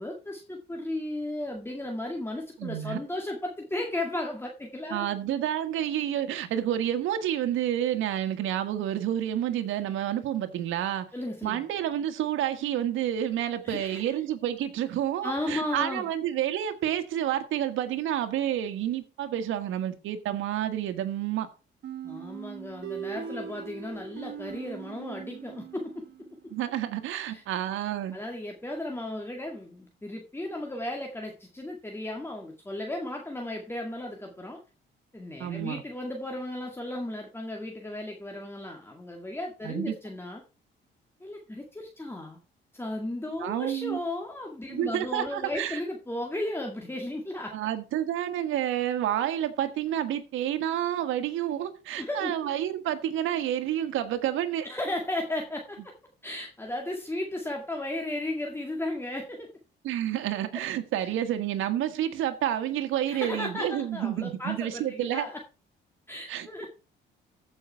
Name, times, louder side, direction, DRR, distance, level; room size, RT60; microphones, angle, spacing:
voice 1, 0.0-5.1 11.1-11.6 13.6-14.0 15.2-16.1 22.0-25.9 27.3-27.4 28.1-34.6 35.1-40.4 41.2-42.4 42.7-47.5 52.0-52.5 54.6-55.9 56.2-59.5 61.0-61.1 63.1-65.3 66.1-66.7, left 1 dB, 10° left, 1 dB, 1.9 m, -35 dB
voice 2, 2.6-3.0 4.9-11.1 11.4-21.5 26.5-28.2 35.4-35.8 39.6-39.9 43.4-44.0 44.7-45.8 47.5-54.7 59.8-65.3 66.3-66.7, right 11 dB, 85° right, 8 dB, 1.5 m, -29 dB
sound 1, 21.8-26.5, right 8 dB, 65° right, 2.4 m, -40 dB
14.5 x 5.5 x 4.5 m, 0.32 s
cardioid pair, 90°, 20 cm